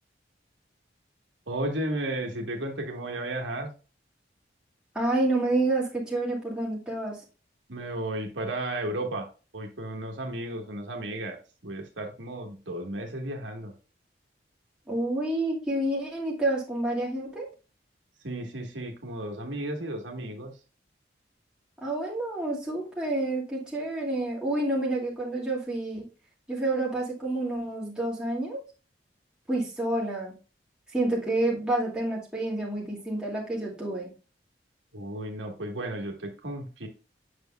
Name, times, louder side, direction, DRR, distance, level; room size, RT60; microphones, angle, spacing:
voice 1, 1.5-3.7 7.7-9.3 9.5-13.7 18.2-20.5 34.9-36.9, right 1 dB, 80° right, 2 dB, 1.4 m, -34 dB
voice 2, 4.9-7.2 14.9-17.5 21.8-26.0 26.5-28.6 29.5-30.3 30.9-34.1, right 2 dB, 5° right, -5 dB, 2.1 m, -28 dB
8.0 x 6.2 x 2.2 m, 0.33 s
head